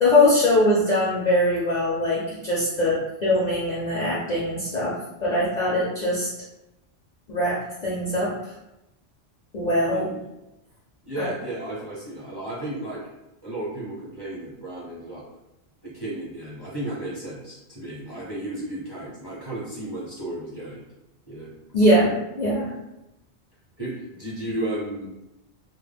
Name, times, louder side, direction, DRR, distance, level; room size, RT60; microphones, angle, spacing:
voice 1, 0.0-4.9 5.2-6.3 7.3-8.3 9.5-10.1 11.2-11.3 21.7-22.7, left 1 dB, 50° left, -7 dB, 0.6 m, -22 dB
voice 2, 9.8-10.3 11.1-13.0 13.4-15.3 15.8-20.8 21.3-21.5 23.8-25.1, right 1 dB, 25° right, -8 dB, 0.7 m, -34 dB
2.2 x 2.0 x 3.4 m, 0.93 s
omnidirectional pair, 1.2 m